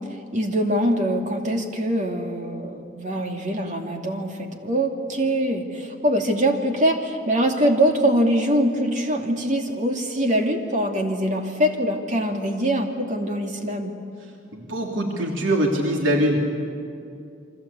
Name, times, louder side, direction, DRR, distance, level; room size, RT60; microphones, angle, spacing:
voice 1, 0.0-13.9, equal, 40° right, 3 dB, 2.6 m, -23 dB
voice 2, 14.5-16.4, right 1 dB, 80° right, 0 dB, 3.1 m, -22 dB
28.5 x 24.5 x 8.4 m, 2.5 s
head